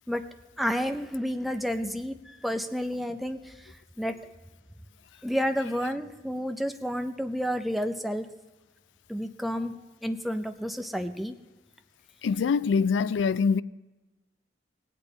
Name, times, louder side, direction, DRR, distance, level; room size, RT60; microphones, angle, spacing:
voice 1, 0.6-2.2 2.4-3.4 4.0-4.2 5.2-8.3 9.1-9.8 10.0-11.3, equal, ahead, 0.5 m, -30 dB
voice 2, 12.2-13.6, left 5 dB, 85° left, 0.3 m, -24 dB
18.5 x 8.3 x 3.9 m
head